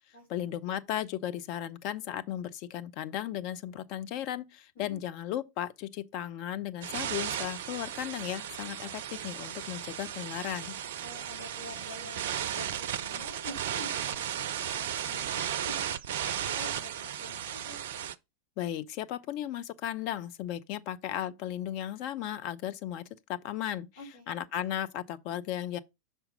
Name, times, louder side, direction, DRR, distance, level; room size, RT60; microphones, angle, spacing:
voice 1, 0.3-10.8 18.6-23.9 24.3-25.8, left 11 dB, 45° left, 0.5 m, -35 dB
sound 1, 6.8-18.1, right 9 dB, 55° right, 0.4 m, -35 dB
voice 2, 11.0-15.8 16.2-17.8 24.0-24.3, left 1 dB, 60° left, 3.4 m, -47 dB
5.8 x 4.5 x 5.3 m
figure-of-eight pair, 90°, 0 cm